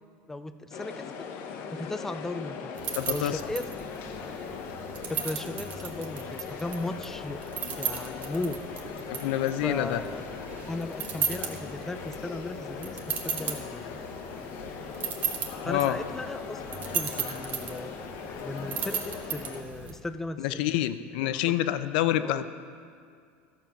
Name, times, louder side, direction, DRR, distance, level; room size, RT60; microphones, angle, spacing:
voice 1, 0.3-1.1 1.7-2.8 3.1-3.7 5.1-7.4 7.8-8.6 9.6-10.2 10.7-14.0 15.6-16.6 16.9-17.9 18.4-20.8 21.2-21.4 22.2-22.5, left 2 dB, 5° left, 11 dB, 0.3 m, -36 dB
sound 1, 0.7-19.6, left 6 dB, 45° left, 0.9 m, -39 dB
sound 2, 2.7-20.0, right 7 dB, 35° right, 1.0 m, -37 dB
voice 2, 3.0-3.4 9.1-10.0 15.6-16.0 20.4-22.5, left 13 dB, 75° left, 12 dB, 0.5 m, -27 dB
13.5 x 6.9 x 5.7 m, 2.3 s
cardioid pair, 165°, 5 cm